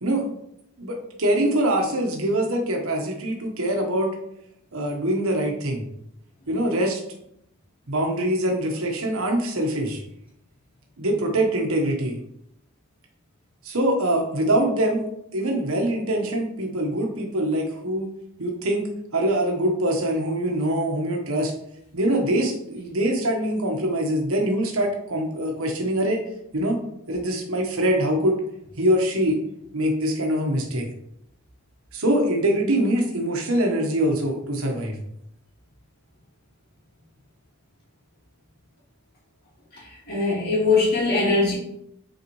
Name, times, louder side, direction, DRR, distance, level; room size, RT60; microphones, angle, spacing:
voice 1, 0.8-4.1 4.7-5.8 6.5-7.0 7.9-10.0 11.0-12.2 13.6-15.1 15.3-18.1 18.4-18.9 19.1-21.5 21.9-26.2 26.5-26.8 27.1-28.4 28.8-29.4 29.7-30.9 31.9-35.0, right 1 dB, 85° right, 1 dB, 1.3 m, -23 dB
voice 2, 40.1-41.5, left 3 dB, 45° left, -8 dB, 2.2 m, -21 dB
8.1 x 4.1 x 3.2 m, 0.77 s
head